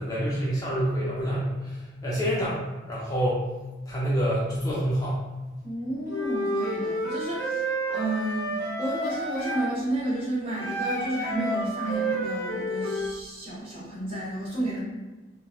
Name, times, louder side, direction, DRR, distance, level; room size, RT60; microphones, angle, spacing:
voice 1, 0.0-3.4 3.9-5.2, equal, 20° left, -7 dB, 0.4 m, -27 dB
voice 2, 5.6-7.7 7.9-14.8, right 1 dB, 30° right, -7 dB, 0.7 m, -31 dB
Wind instrument woodwind instrument, 6.1-9.7 10.6-13.1, right 1 dB, 65° left, 0.6 m, -30 dB
2.8 x 2.1 x 2.2 m, 1.2 s
head